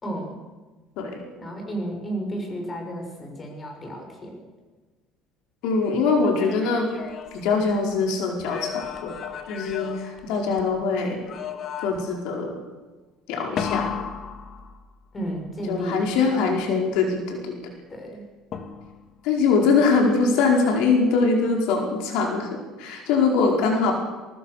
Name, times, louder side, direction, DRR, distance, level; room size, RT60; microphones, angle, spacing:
voice 1, 0.0-0.4 1.4-4.4 15.1-16.6 17.9-18.2, right 1 dB, 20° left, 2 dB, 6.4 m, -33 dB
voice 2, 5.6-6.9 7.3-9.1 9.5-11.2 11.8-12.5 13.3-13.9 15.7-17.6 19.2-23.9, left 4 dB, 75° left, 1 dB, 4.9 m, -22 dB
sound 1, 6.1-8.0 8.4-10.8 11.3-12.2 13.6-15.2 18.5-19.2, left 7 dB, 45° left, 2.3 m, -34 dB
24.0 x 20.5 x 6.8 m, 1.3 s
cardioid pair, 135°, 0 cm